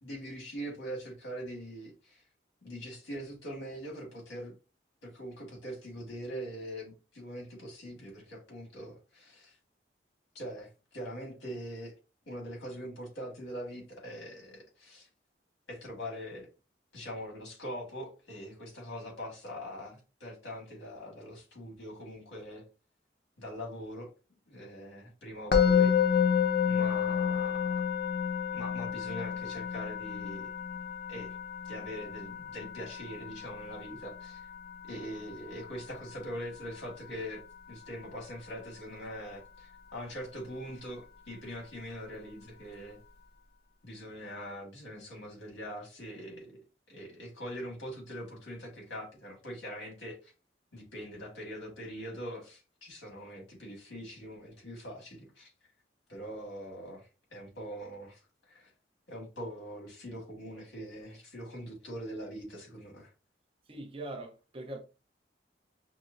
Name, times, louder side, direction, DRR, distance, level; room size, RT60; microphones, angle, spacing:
voice 1, 0.0-2.2 2.6-4.5 5.0-9.6 10.4-12.0 12.3-15.1 15.7-16.5 16.9-22.6 23.4-24.1 24.5-25.9 26.7-27.8 28.5-30.5 31.1-31.4 31.7-34.5 34.8-37.4 37.7-43.0 43.8-46.6 46.9-50.3 50.7-55.5 56.1-58.7 59.1-63.1, equal, 90° left, 1.7 m, -42 dB
Musical instrument, 25.5-36.6, left 7 dB, 55° left, 0.5 m, -30 dB
voice 2, 63.7-64.8, right 2 dB, 30° right, 0.6 m, -41 dB
5.8 x 2.0 x 2.5 m
head